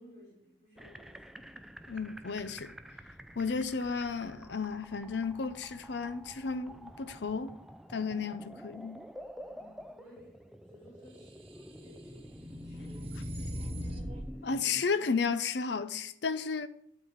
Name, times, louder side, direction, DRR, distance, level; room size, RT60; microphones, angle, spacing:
voice 1, 0.0-1.4 9.5-15.0, left 1 dB, 40° left, 3.4 m, -58 dB
sound 1, 0.8-14.9, equal, ahead, 0.4 m, -49 dB
voice 2, 1.9-2.7 3.4-7.6 7.9-9.0 14.4-16.7, left 5 dB, 65° left, 0.6 m, -33 dB
sound 2, 11.3-14.3, equal, 30° right, 1.2 m, -40 dB
11.5 x 4.1 x 7.1 m
head